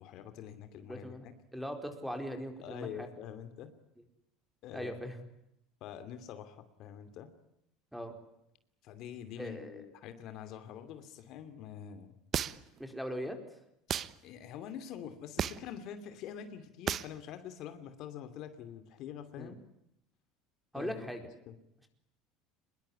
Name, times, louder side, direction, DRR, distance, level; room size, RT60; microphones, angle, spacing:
voice 1, 0.0-1.3 2.6-3.7 4.6-4.9 5.8-7.3 8.8-12.1 14.2-19.6 20.7-21.1 21.5-21.6, left 9 dB, 55° left, 10 dB, 2.7 m, -45 dB
voice 2, 0.9-1.2 1.5-3.1 4.7-5.2 7.9-8.1 9.4-9.8 12.8-13.6 19.4-19.5 20.7-21.3, equal, ahead, 6 dB, 4.4 m, -40 dB
sound 1, 12.3-12.8 13.9-14.1 15.4-15.7 16.9-17.1, right 9 dB, 35° right, 1.0 m, -33 dB
24.5 x 22.0 x 9.9 m, 0.79 s
supercardioid pair, 135°, 0 cm